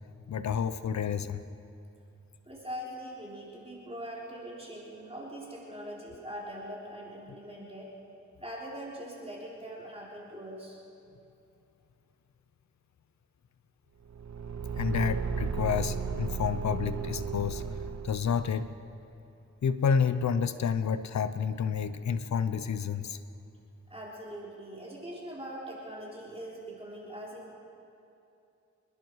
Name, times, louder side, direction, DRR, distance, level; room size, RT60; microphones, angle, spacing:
voice 1, 0.3-1.4 14.8-17.6 18.0-18.7 19.6-23.2, left 7 dB, 65° left, 12 dB, 0.8 m, -29 dB
voice 2, 2.5-7.9 8.4-10.8 23.9-27.5, equal, 20° right, -5 dB, 3.7 m, -42 dB
Car / Engine, 14.1-18.6, right 6 dB, 65° right, 0.9 m, -34 dB
27.0 x 11.0 x 4.7 m, 2.8 s
cardioid pair, 55°, 30 cm